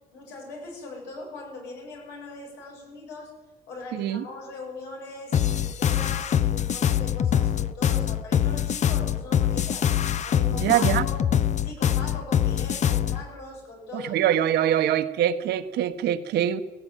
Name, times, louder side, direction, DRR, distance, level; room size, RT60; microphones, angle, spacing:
voice 1, 0.1-3.3 3.7-14.5, left 3 dB, 85° left, 0 dB, 7.9 m, -41 dB
voice 2, 3.9-4.2 10.5-11.0 13.9-16.6, right 11 dB, 75° right, 10 dB, 1.4 m, -24 dB
sound 1, 5.3-13.2, left 9 dB, 45° left, 0.8 m, -24 dB
17.0 x 17.0 x 9.3 m, 1.2 s
cardioid pair, 110°, 17 cm